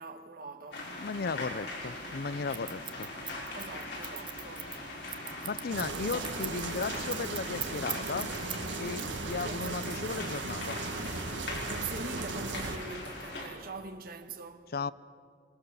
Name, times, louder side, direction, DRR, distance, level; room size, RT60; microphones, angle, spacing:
voice 1, 0.0-1.0 3.5-4.7 9.4-9.8 11.7-14.7, right 3 dB, 55° right, 1.5 m, -43 dB
sound 1, 0.7-13.4, left 2 dB, 75° left, 5.9 m, -41 dB
voice 2, 1.0-3.1 5.4-8.3 8.7-10.8 14.7-14.9, left 4 dB, 60° left, 0.6 m, -35 dB
Scissors, 2.5-8.7 9.0-10.2, right 9 dB, 25° right, 0.9 m, -40 dB
sound 2, 5.7-12.8, right 3 dB, 85° right, 1.6 m, -37 dB
25.5 x 22.0 x 6.8 m
head